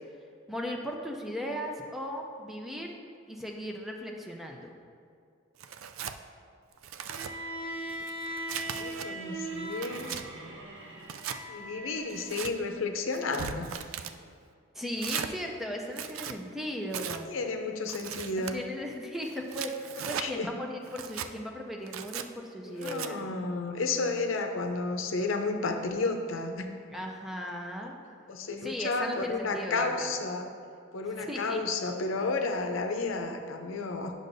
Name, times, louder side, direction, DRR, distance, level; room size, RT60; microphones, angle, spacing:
voice 1, 0.5-3.0 3.3-4.7 14.7-17.3 18.4-23.3 26.9-28.0 28.6-30.1 31.3-31.6, equal, ahead, 1 dB, 0.5 m, -37 dB
Tearing, 5.6-6.2 6.7-7.3 7.9-9.1 9.6-10.2 11.0-11.4 12.1-12.5 13.1-14.2 15.0-15.3 15.9-16.4 16.9-17.2 17.9-18.5 19.3-20.3 20.9-21.3 21.9-22.3 22.8-23.1, right 8 dB, 80° right, 0.4 m, -38 dB
Bowed string instrument, 7.1-12.3, right 1 dB, 65° right, 0.8 m, -39 dB
voice 2, 8.6-10.2 11.5-13.9 17.1-18.7 20.2-20.5 22.6-26.7 28.3-30.5 30.9-34.1, left 3 dB, 75° left, 4 dB, 0.6 m, -32 dB
9.8 x 6.4 x 2.6 m, 2.3 s
head